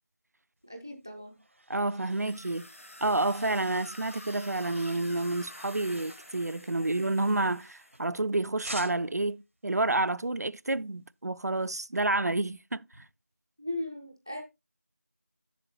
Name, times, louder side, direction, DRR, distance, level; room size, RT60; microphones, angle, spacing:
voice 1, 0.6-1.4 6.8-6.9 13.6-14.4, left 1 dB, 15° right, 0.5 m, -38 dB
sound 1, 0.9-8.2 8.6-9.3, right 1 dB, 55° right, 0.8 m, -49 dB
voice 2, 1.7-2.7 3.0-12.9, right 2 dB, 85° right, 0.4 m, -29 dB
sound 2, 2.1-8.1, left 1 dB, 55° left, 1.1 m, -49 dB
8.0 x 7.0 x 2.9 m
figure-of-eight pair, 175°, 9 cm